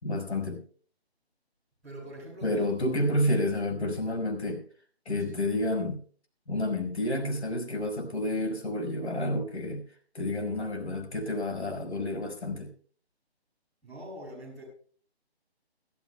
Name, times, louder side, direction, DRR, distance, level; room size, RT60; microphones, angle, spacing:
voice 1, 0.0-0.6 2.4-4.6 5.1-6.0 6.5-9.8 10.1-12.7, left 1 dB, 85° left, 5 dB, 5.4 m, -30 dB
voice 2, 1.8-2.9 5.2-5.4 13.8-14.6, equal, ahead, -14 dB, 5.4 m, -43 dB
22.5 x 14.0 x 2.3 m, 0.43 s
hypercardioid pair, 175°, 32 cm